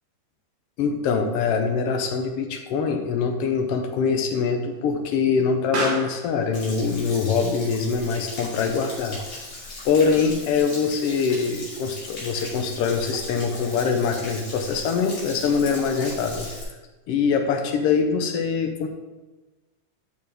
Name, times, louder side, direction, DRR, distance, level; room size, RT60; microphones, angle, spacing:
voice 1, 0.8-9.2 9.8-16.5 17.1-18.9, left 5 dB, 85° left, 4 dB, 1.3 m, -23 dB
Explosion, 1.6-10.5, right 2 dB, 55° right, 2.4 m, -37 dB
Stream / Splash splatter / Trickle dribble, 6.5-16.6, left 2 dB, 40° left, 3.1 m, -38 dB
10.5 x 6.7 x 3.5 m, 1.2 s
omnidirectional pair, 3.7 m